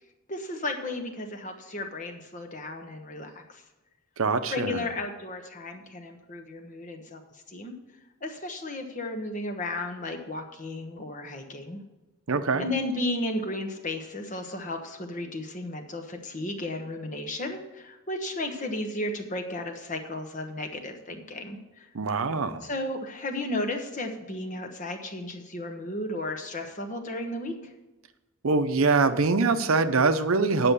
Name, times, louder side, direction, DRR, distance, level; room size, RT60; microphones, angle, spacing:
voice 1, 0.3-3.6 4.5-7.2 7.5-7.8 8.2-11.8 12.6-21.9 22.6-27.7, left 1 dB, 35° left, 5 dB, 1.1 m, -34 dB
voice 2, 4.2-4.8 12.3-12.6 21.9-22.6 28.4-30.7, right 4 dB, 70° right, 10 dB, 0.6 m, -23 dB
9.9 x 5.9 x 6.8 m, 1.0 s
head